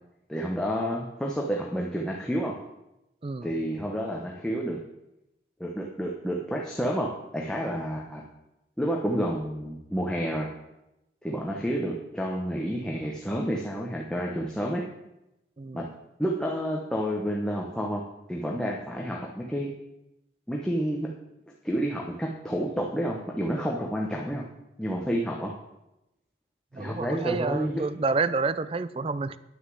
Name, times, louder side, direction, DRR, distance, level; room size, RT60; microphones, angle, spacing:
voice 1, 0.3-2.6 3.4-4.8 5.6-8.2 8.8-10.5 11.2-14.8 15.7-15.9 16.2-18.0 18.3-19.7 20.5-21.1 21.6-24.4 24.8-25.5 26.7-27.8, equal, 5° left, -2 dB, 0.9 m, -29 dB
voice 2, 15.6-15.9 26.7-29.4, right 4 dB, 30° right, 15 dB, 0.4 m, -29 dB
9.8 x 6.5 x 7.7 m, 0.91 s
head